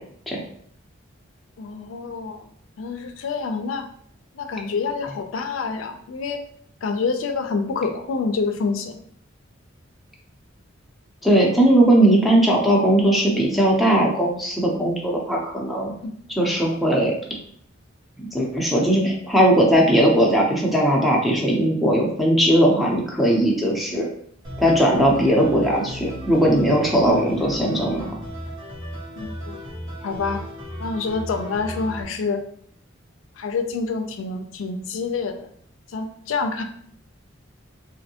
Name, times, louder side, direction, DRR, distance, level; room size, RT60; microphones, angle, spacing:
voice 1, 1.6-2.5 2.8-3.9 4.3-6.4 6.8-9.0 16.0-16.1 29.2-29.6 30.0-30.4 30.8-32.4 33.4-35.5 35.9-36.6, left 4 dB, 80° left, 6 dB, 0.4 m, -27 dB
voice 2, 11.2-15.9 16.4-17.1 18.3-24.1 24.6-28.0, right 1 dB, ahead, -3 dB, 0.6 m, -18 dB
sound 1, 24.4-32.0, equal, 70° right, 1.2 m, -36 dB
3.2 x 2.6 x 2.7 m, 0.64 s
head